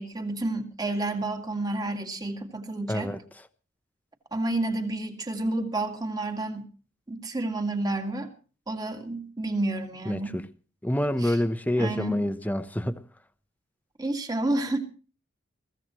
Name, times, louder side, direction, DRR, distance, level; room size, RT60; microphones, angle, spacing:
voice 1, 0.0-3.1 4.3-6.7 7.1-8.3 8.7-10.4 11.2-11.4 11.8-12.2 14.0-14.8, right 2 dB, 20° right, 2.1 m, -30 dB
voice 2, 2.9-3.2 10.1-10.4 10.8-13.0, left 1 dB, 10° left, 0.9 m, -27 dB
22.5 x 15.5 x 3.1 m
head